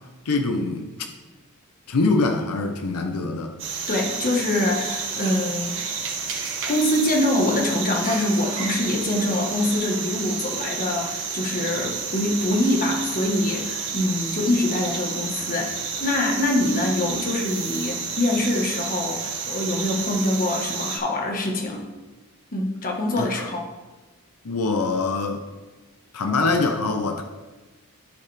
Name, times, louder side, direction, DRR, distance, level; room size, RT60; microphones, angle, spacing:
voice 1, 0.2-0.9 1.9-3.6 23.2-23.3 24.4-25.4 26.1-27.2, left 3 dB, 85° left, 4 dB, 0.7 m, -23 dB
sound 1, 3.6-21.0, right 5 dB, 60° right, 1.5 m, -30 dB
voice 2, 3.9-6.0 6.7-21.9 22.5-23.7, left 1 dB, 40° left, 0 dB, 1.3 m, -24 dB
14.0 x 4.7 x 3.4 m, 1.2 s
head